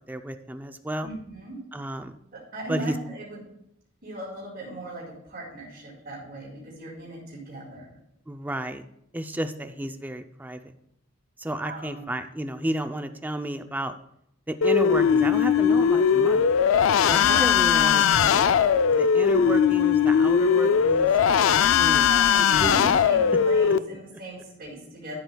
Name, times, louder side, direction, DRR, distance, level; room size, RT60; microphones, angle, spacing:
voice 1, 0.1-1.1 1.7-2.2 2.7-3.0 8.3-8.9 9.1-10.7 11.4-14.0 14.5-16.5 17.1-18.5 18.9-21.1 21.7-22.9, right 1 dB, 10° right, 8 dB, 0.4 m, -32 dB
voice 2, 1.0-1.6 2.3-3.4 4.0-7.9 11.6-12.1 17.2-18.0 22.1-25.1, right 1 dB, 50° right, -10 dB, 4.0 m, -38 dB
sound 1, 14.6-23.8, left 7 dB, 75° left, 0.4 m, -20 dB
14.0 x 8.0 x 2.3 m, 0.78 s
head